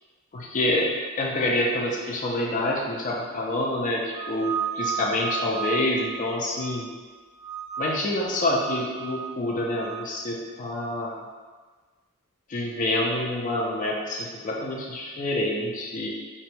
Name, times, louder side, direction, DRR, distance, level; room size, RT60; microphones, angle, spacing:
voice 1, 0.3-0.9 1.2-6.9 7.8-11.1 12.5-16.1, left 1 dB, 35° left, -2 dB, 0.4 m, -27 dB
sound 1, 4.1-7.0 7.4-8.2 8.5-10.1, right 8 dB, 20° right, 0.6 m, -34 dB
3.0 x 2.1 x 2.6 m, 1.4 s
head